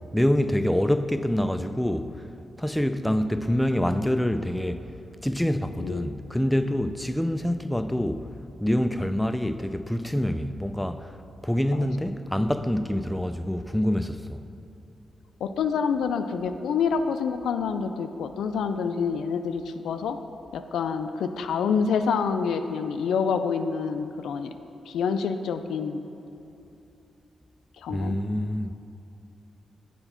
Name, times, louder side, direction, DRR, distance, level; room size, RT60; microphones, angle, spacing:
voice 1, 0.1-2.2 2.6-4.8 5.2-8.3 8.6-11.1 11.4-14.4 27.9-28.7, left 1 dB, 5° left, 0.4 m, -26 dB
voice 2, 15.4-20.2 20.5-24.5 24.9-26.0 27.8-28.2, left 6 dB, 80° left, 0.3 m, -27 dB
7.9 x 4.4 x 5.8 m
supercardioid pair, 50°, 0 cm